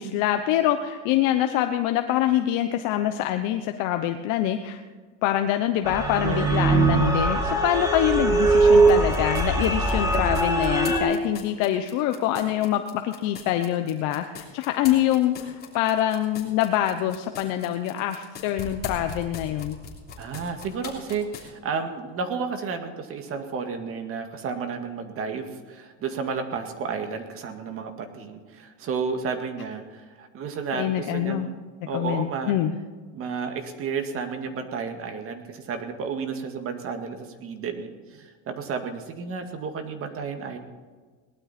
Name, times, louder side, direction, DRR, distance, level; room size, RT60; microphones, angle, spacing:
voice 1, 0.0-4.8 5.2-19.8 30.7-31.5 31.9-32.7, left 12 dB, 55° left, 7 dB, 1.0 m, -25 dB
sound 1, 5.9-11.0, right 3 dB, 10° right, 3.0 m, -21 dB
voice 2, 6.2-6.7 20.2-31.5 31.9-32.5 33.1-40.6, right 5 dB, 35° right, 6 dB, 2.0 m, -32 dB
sound 2, 8.9-21.5, left 5 dB, 25° left, 3.2 m, -40 dB
19.0 x 12.0 x 4.3 m, 1.4 s
supercardioid pair, 135°, 36 cm